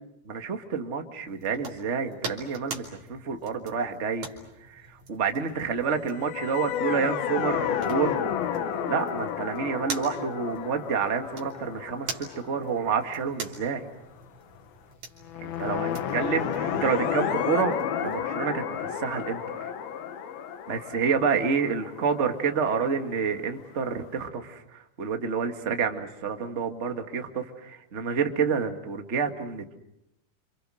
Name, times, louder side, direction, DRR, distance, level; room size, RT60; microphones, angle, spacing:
voice 1, 0.2-4.3 4.7-8.2 8.9-12.1 12.4-13.8 15.4-17.7 18.0-19.7 20.7-29.8, right 6 dB, 30° right, 5 dB, 1.2 m, -29 dB
sound 1, 1.3-18.2, right 4 dB, 50° right, 4.1 m, -44 dB
sound 2, 6.2-13.4 15.3-23.1, left 9 dB, 80° left, 3.3 m, -32 dB
29.0 x 27.5 x 6.4 m, 0.83 s
omnidirectional pair, 4.4 m